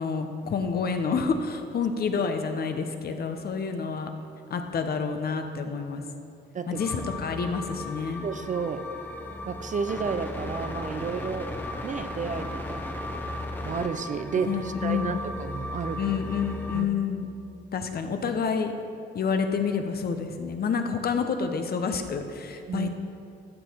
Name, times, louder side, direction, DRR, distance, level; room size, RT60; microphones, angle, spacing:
voice 1, 0.0-4.1 4.5-6.1 6.7-8.3 14.4-15.2 16.0-17.3 17.7-18.7 19.1-22.9, left 5 dB, 50° left, 6 dB, 0.9 m, -28 dB
sound 1, 6.7-16.8, left 1 dB, 10° left, 1.0 m, -36 dB
voice 2, 8.2-8.9 9.5-11.5 11.8-12.9 13.6-16.0 16.7-16.9 22.7-22.9, right 5 dB, 40° right, 10 dB, 0.6 m, -31 dB
14.0 x 6.4 x 4.6 m, 2.6 s
cardioid pair, 90°, 20 cm